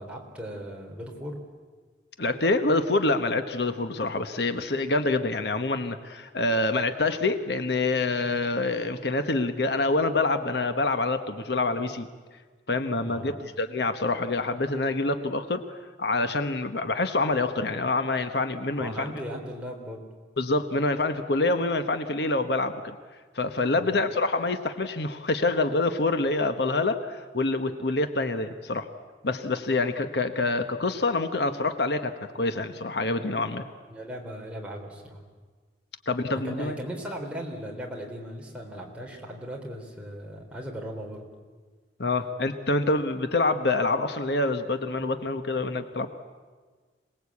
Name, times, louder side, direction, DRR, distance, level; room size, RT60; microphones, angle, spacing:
voice 1, 0.0-1.4 13.1-13.4 18.8-20.0 23.8-24.0 33.9-35.2 36.3-41.3, equal, 5° right, -1 dB, 3.4 m, -38 dB
voice 2, 2.2-12.1 12.7-19.1 20.4-22.8 23.3-28.9 29.2-33.6 36.1-36.8 42.0-46.1, left 2 dB, 65° left, 8 dB, 1.1 m, -26 dB
26.5 x 19.5 x 8.5 m, 1.4 s
head